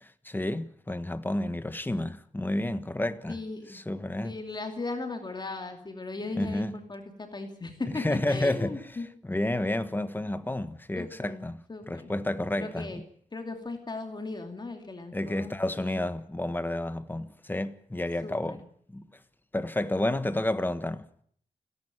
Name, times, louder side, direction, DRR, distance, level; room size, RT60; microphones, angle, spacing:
voice 1, 0.0-3.4 3.7-4.4 6.4-6.7 7.9-8.8 9.2-13.0 15.1-18.6 18.9-19.1 19.5-21.1, left 1 dB, 15° left, 1.4 m, -30 dB
voice 2, 3.3-3.8 4.2-9.1 11.0-12.1 12.6-13.0 13.3-16.1 18.2-18.7, left 3 dB, 35° left, 2.6 m, -38 dB
29.0 x 11.0 x 9.1 m
wide cardioid pair, 90°, 13 cm